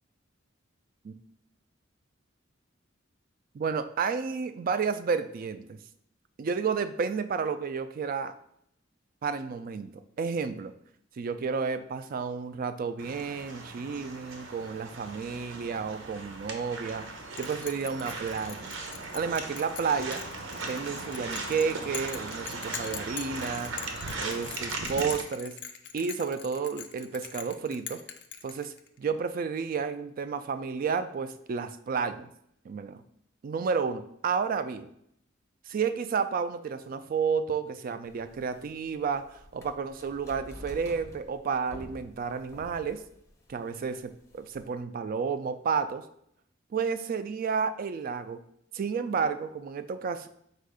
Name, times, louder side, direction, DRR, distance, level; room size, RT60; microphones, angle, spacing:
voice 1, 3.5-5.8 6.4-8.3 9.2-10.7 11.2-17.1 17.4-18.7 19.1-20.2 20.6-23.7 24.2-25.6 25.9-28.0 28.4-32.3 32.7-33.0 33.4-34.9 35.7-39.2 39.5-43.0 43.5-46.1 46.7-48.4 48.7-50.3, right 5 dB, 45° right, 11 dB, 0.3 m, -31 dB
sound 1, 13.0-25.2, right 3 dB, 80° right, 0.7 m, -38 dB
Bell, 17.4-29.0, left 9 dB, 65° left, 0.4 m, -42 dB
sound 2, 38.1-44.7, equal, 15° left, 0.6 m, -49 dB
4.4 x 2.4 x 4.8 m, 0.70 s
head